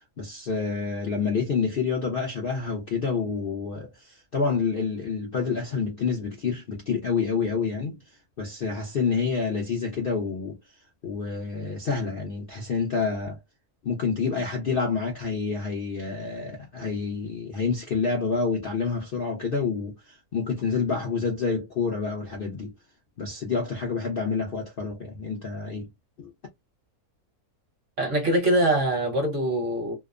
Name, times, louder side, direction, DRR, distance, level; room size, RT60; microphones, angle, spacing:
voice 1, 0.0-8.0 8.4-10.6 11.0-13.4 13.8-22.7 23.2-25.9 26.2-26.3, left 5 dB, 55° left, 0.6 m, -28 dB
voice 2, 28.0-29.9, right 1 dB, 55° right, 1.2 m, -23 dB
2.8 x 2.0 x 2.3 m
omnidirectional pair, 1.6 m